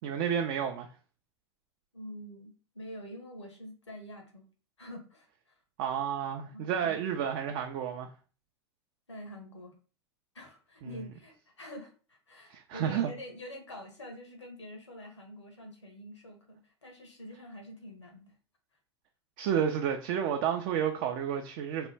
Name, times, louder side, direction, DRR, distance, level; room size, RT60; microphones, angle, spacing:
voice 1, 0.0-0.9 5.8-8.1 12.5-13.1 19.4-21.9, right 8 dB, 50° right, 0.4 m, -31 dB
voice 2, 1.9-4.5 4.8-5.5 6.5-7.0 9.1-9.7 10.3-18.3, equal, 90° left, 0.9 m, -46 dB
3.0 x 2.1 x 3.2 m
hypercardioid pair, 90°, 14 cm